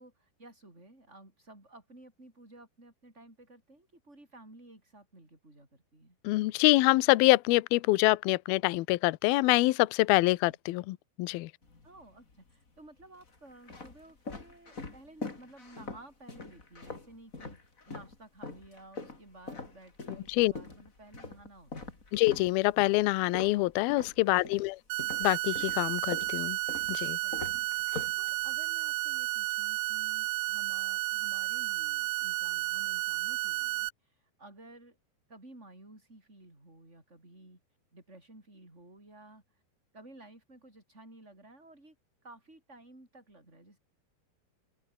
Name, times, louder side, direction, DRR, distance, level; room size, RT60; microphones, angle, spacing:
voice 1, 0.0-6.2 10.2-10.6 11.8-22.0 24.0-24.4 27.2-35.0 35.3-37.6 37.9-39.6 39.9-42.0 42.2-43.8, right 2 dB, 15° right, 7.2 m, -54 dB
voice 2, 6.2-11.5 20.3-20.5 22.1-24.8 25.2-26.6 26.9-27.2, left 20 dB, 80° left, 2.2 m, -25 dB
sound 1, 11.6-12.3 13.0-18.2 18.4-24.7 25.0-28.7, left 3 dB, 20° left, 3.0 m, -43 dB
sound 2, 24.9-33.9, right 18 dB, 75° right, 2.9 m, -32 dB
open air
omnidirectional pair, 5.2 m